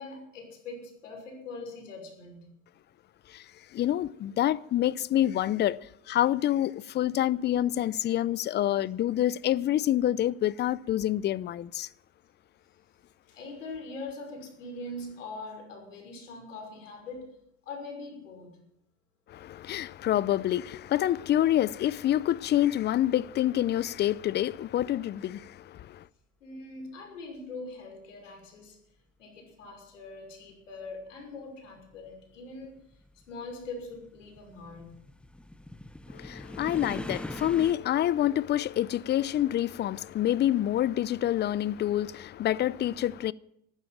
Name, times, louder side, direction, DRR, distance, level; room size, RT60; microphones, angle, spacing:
voice 1, 0.0-2.5 13.3-17.4 17.7-18.6 26.4-28.8 29.2-32.9 33.3-35.0, left 2 dB, 85° left, 6.0 m, -42 dB
voice 2, 3.7-5.8 6.1-11.9 19.3-26.0 36.1-43.3, left 12 dB, 30° left, 0.6 m, -27 dB
sound 1, 30.5-30.6 31.6-37.7, left 1 dB, 5° left, 0.8 m, -42 dB
14.5 x 12.0 x 7.7 m
hypercardioid pair, 95°, 37 cm